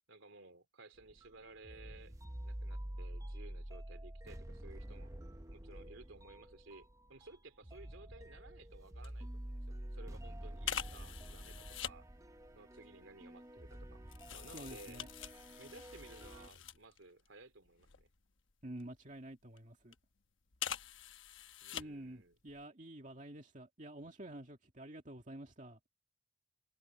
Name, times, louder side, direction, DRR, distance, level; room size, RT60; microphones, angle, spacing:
voice 1, 0.1-2.1 2.4-5.1 5.5-12.0 12.5-14.0 14.3-15.1 15.6-18.1 21.6-22.4, right 3 dB, 75° right, 2.7 m, -57 dB
sound 1, 1.0-16.5, right 1 dB, 15° right, 0.8 m, -48 dB
sound 2, 9.0-9.2 9.5-9.7 10.6-12.0 12.8-17.3 17.6-19.0 19.6-20.0 20.5-22.2 22.5-22.6, left 9 dB, 70° left, 1.1 m, -45 dB
voice 2, 14.5-15.1 18.6-19.9 21.7-25.8, right 1 dB, 40° right, 2.3 m, -49 dB
head